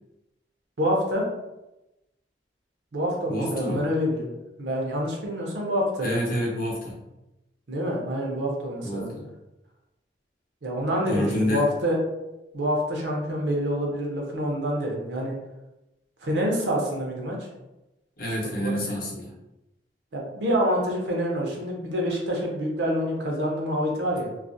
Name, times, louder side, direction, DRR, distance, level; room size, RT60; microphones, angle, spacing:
voice 1, 0.8-1.2 2.9-4.3 4.6-6.4 7.7-9.1 10.6-12.0 12.5-15.3 16.2-17.5 18.6-18.8 20.1-24.3, equal, 70° right, -1 dB, 0.6 m, -27 dB
voice 2, 3.3-3.9 6.0-7.0 8.8-9.3 11.1-11.6 18.2-19.3, equal, 55° left, -3 dB, 0.7 m, -28 dB
2.4 x 2.0 x 2.6 m, 0.96 s
head